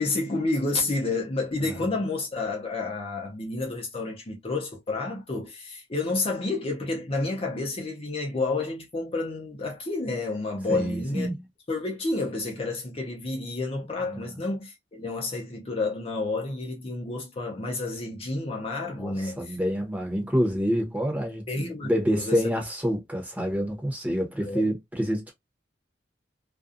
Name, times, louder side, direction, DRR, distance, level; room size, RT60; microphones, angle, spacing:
voice 1, 0.0-11.3 11.7-19.6 21.5-22.4 24.4-24.7, left 3 dB, 30° left, 0.6 m, -30 dB
voice 2, 10.7-11.4 14.0-14.2 19.0-25.3, equal, 10° right, 0.9 m, -27 dB
2.5 x 2.2 x 2.5 m
head